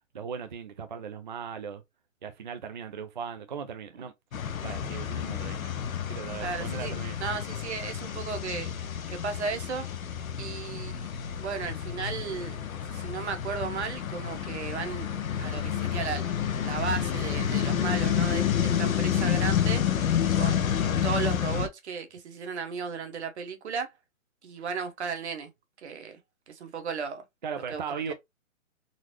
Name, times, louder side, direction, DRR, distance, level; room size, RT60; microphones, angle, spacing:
voice 1, 0.1-1.8 2.2-4.1 4.6-5.7 6.1-7.2 27.4-28.1, right 6 dB, 35° right, 0.4 m, -38 dB
sound 1, 4.3-21.7, left 9 dB, 80° left, 0.7 m, -29 dB
voice 2, 6.4-6.9 7.2-8.7 9.1-9.9 10.4-11.1 11.4-12.6 12.9-15.1 15.4-16.3 16.6-19.8 20.3-23.9 24.4-25.5 25.8-26.2 26.5-27.2 27.7-28.1, right 5 dB, 55° right, 1.1 m, -35 dB
3.9 x 2.0 x 3.0 m
hypercardioid pair, 155°, 41 cm